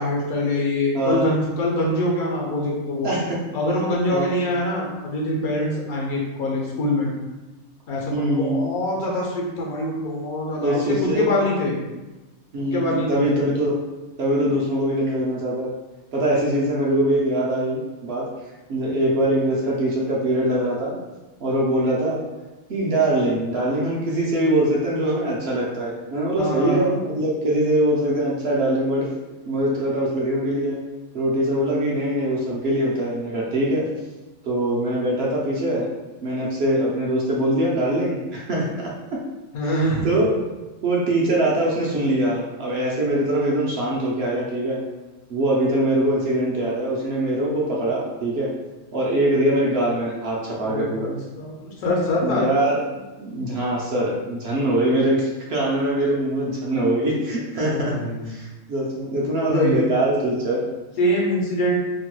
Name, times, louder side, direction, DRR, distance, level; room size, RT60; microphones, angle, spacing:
voice 1, 0.0-3.1 3.5-7.1 7.9-11.8 12.7-13.5 16.6-16.7 26.4-27.0 39.5-40.0 50.7-52.5 57.6-58.3 59.5-60.0 61.0-61.8, left 1 dB, 80° left, -2 dB, 1.2 m, -24 dB
voice 2, 0.9-1.4 3.0-3.4 4.1-4.3 8.1-8.6 10.6-11.3 12.5-13.8 14.2-15.7 16.1-18.3 18.7-21.0 21.4-22.2 22.7-29.1 29.4-30.8 31.1-33.9 34.4-35.9 36.2-38.9 39.6-40.4 40.8-44.8 45.3-48.5 48.9-51.1 52.2-58.0 58.3-60.6, right 1 dB, 65° right, -4 dB, 0.6 m, -23 dB
2.9 x 2.2 x 2.9 m, 1.1 s
omnidirectional pair, 1.5 m